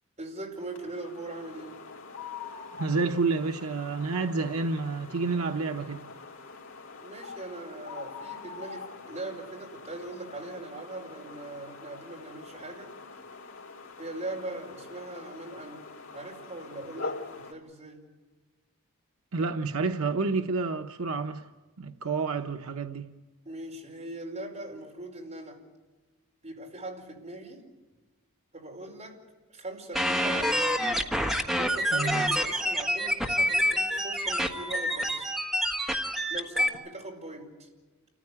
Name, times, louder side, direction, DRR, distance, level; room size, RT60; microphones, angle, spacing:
voice 1, 0.2-1.9 7.0-12.9 14.0-18.1 23.4-25.6 26.4-27.7 28.5-29.2 29.5-30.8 31.6-35.3 36.3-37.7, right 2 dB, 30° right, 5.0 m, -40 dB
sound 1, 0.6-17.5, left 4 dB, 70° left, 3.3 m, -44 dB
voice 2, 2.8-6.1 19.3-21.5 21.8-23.1 31.9-32.4, right 4 dB, 80° right, 0.9 m, -29 dB
sound 2, 29.9-36.7, equal, ahead, 1.5 m, -27 dB
29.0 x 14.5 x 9.9 m
head